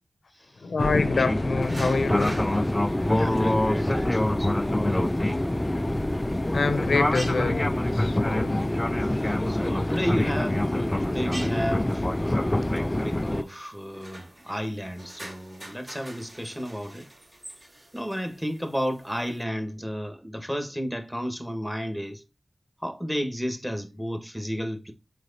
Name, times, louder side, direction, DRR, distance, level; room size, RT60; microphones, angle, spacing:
voice 1, 0.6-2.5 6.5-8.6 9.5-9.8, left 4 dB, 85° left, 0.8 m, -27 dB
Fixed-wing aircraft airplane, 0.8-13.4, left 1 dB, 20° left, 0.4 m, -25 dB
sound 1, 1.6-19.4, right 1 dB, 30° right, 2.7 m, -46 dB
voice 2, 3.0-5.2 9.1-17.1 17.9-22.2 22.8-24.9, equal, 5° right, 1.7 m, -32 dB
6.3 x 4.9 x 4.2 m
wide cardioid pair, 75°, 0 cm